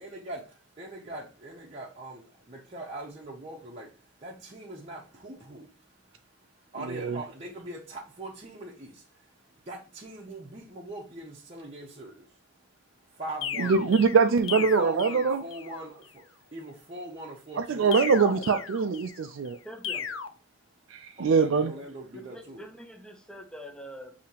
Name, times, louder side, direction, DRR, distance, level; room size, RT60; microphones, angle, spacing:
voice 1, 0.0-12.7 13.0-13.8 14.5-18.6 19.5-19.7 19.9-20.2 20.7-22.6, right 1 dB, 30° right, 0.7 m, -42 dB
voice 2, 6.9-7.2 13.6-15.4 17.6-19.6 20.9-21.7, right 5 dB, 75° right, 0.4 m, -23 dB
sound 1, 13.4-15.8 17.9-19.3 19.8-20.3, left 7 dB, 70° left, 0.5 m, -36 dB
voice 3, 19.6-20.1 22.1-24.1, equal, 5° left, 0.6 m, -44 dB
6.6 x 2.8 x 2.8 m
head